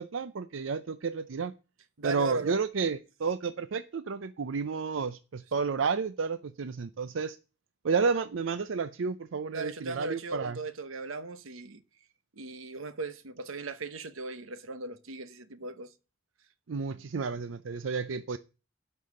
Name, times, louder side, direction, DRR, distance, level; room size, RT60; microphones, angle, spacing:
voice 1, 0.0-1.5 2.0-7.4 7.8-10.6 16.7-18.4, right 5 dB, 70° right, 0.5 m, -31 dB
voice 2, 2.0-2.6 9.5-11.8 12.3-15.9, right 2 dB, 90° right, 1.0 m, -38 dB
12.0 x 5.6 x 6.5 m
head